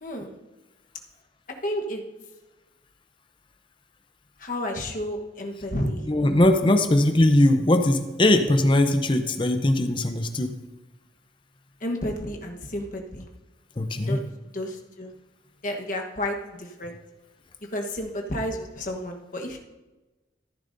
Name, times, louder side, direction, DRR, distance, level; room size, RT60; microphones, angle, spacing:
voice 1, 0.0-0.4 1.6-2.0 4.4-6.0 11.8-13.2 14.0-14.2 14.5-15.1 15.6-17.0 17.7-19.6, left 1 dB, 45° left, 2 dB, 1.2 m, -31 dB
voice 2, 6.1-10.6 13.8-14.2, left 1 dB, 25° left, 7 dB, 0.6 m, -20 dB
14.0 x 10.0 x 2.6 m, 1.1 s
head